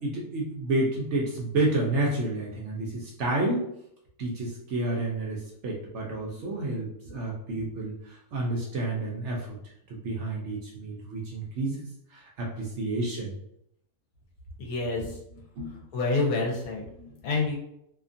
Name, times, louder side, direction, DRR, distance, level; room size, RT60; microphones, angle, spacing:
voice 1, 0.0-3.7 4.2-9.6 9.9-11.8 12.1-13.3 14.9-15.1 15.6-15.8 17.0-17.2, right 2 dB, 65° right, -2 dB, 0.8 m, -30 dB
voice 2, 14.6-15.2 15.9-16.8 17.2-17.6, left 3 dB, 75° left, -1 dB, 1.2 m, -27 dB
2.8 x 2.4 x 2.5 m, 0.76 s
omnidirectional pair, 1.6 m